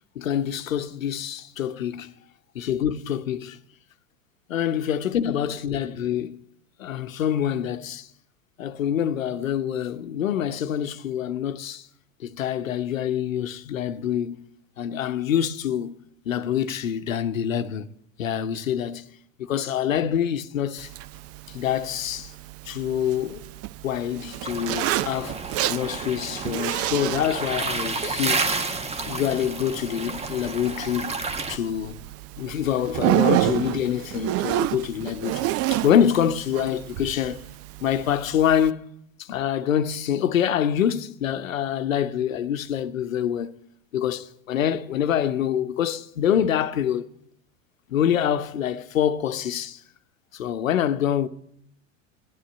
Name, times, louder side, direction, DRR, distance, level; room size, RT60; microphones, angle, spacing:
voice 1, 0.2-2.1 2.5-3.6 4.5-6.4 6.8-8.1 8.6-11.9 12.2-14.4 14.8-15.9 16.3-17.9 18.2-19.1 19.5-20.9 21.5-22.3 22.7-23.4 23.8-25.4 25.7-28.4 29.1-31.2 31.5-31.9 32.4-37.4 37.8-38.9 39.2-43.5 43.9-47.1 47.9-49.8 50.3-51.3, left 9 dB, 90° left, 0.9 m, -26 dB
Zipper (clothing), 20.8-38.7, right 15 dB, 40° right, 0.5 m, -30 dB
sound 1, 24.4-31.6, right 3 dB, 15° right, 1.0 m, -31 dB
12.0 x 9.4 x 8.5 m
hypercardioid pair, 95°, 39 cm